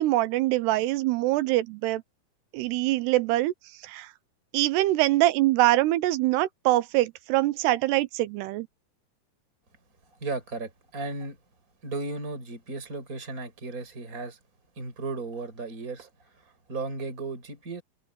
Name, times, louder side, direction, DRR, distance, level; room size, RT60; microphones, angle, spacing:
voice 1, 0.0-2.0 2.5-3.5 3.8-4.1 4.5-8.7, right 17 dB, 80° right, 2.7 m, -24 dB
voice 2, 10.2-11.4 11.8-14.4 14.8-16.1 16.7-17.8, right 3 dB, 20° right, 5.9 m, -35 dB
open air
omnidirectional pair, 5.0 m